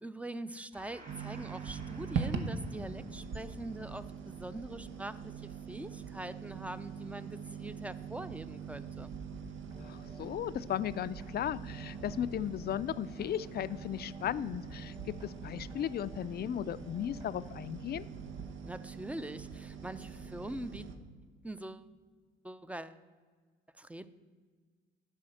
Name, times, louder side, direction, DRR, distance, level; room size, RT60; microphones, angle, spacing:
voice 1, 0.0-9.1 18.6-20.8 21.4-21.9 22.4-23.0 23.7-24.1, right 1 dB, 5° right, 13 dB, 0.5 m, -43 dB
Gong, 0.7-7.7, right 2 dB, 40° right, 3.5 m, -57 dB
sound 1, 1.1-21.0, right 6 dB, 80° right, 1.0 m, -43 dB
sound 2, 9.7-17.7, right 1 dB, 25° right, 1.6 m, -54 dB
voice 2, 9.8-18.1, left 10 dB, 55° left, 15 dB, 0.4 m, -36 dB
10.0 x 5.6 x 7.8 m, 1.5 s
cardioid pair, 90°, 20 cm